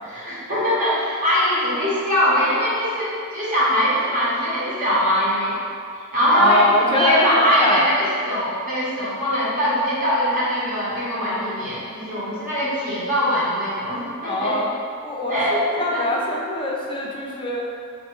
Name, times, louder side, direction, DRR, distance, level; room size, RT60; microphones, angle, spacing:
voice 1, 0.0-5.5 6.1-14.6 15.3-16.0, equal, 40° right, -8 dB, 1.0 m, -22 dB
voice 2, 6.3-7.8 14.2-14.7 15.0-15.4 15.6-17.6, left 1 dB, 20° left, -2 dB, 0.4 m, -23 dB
3.4 x 2.2 x 4.3 m, 2.3 s
head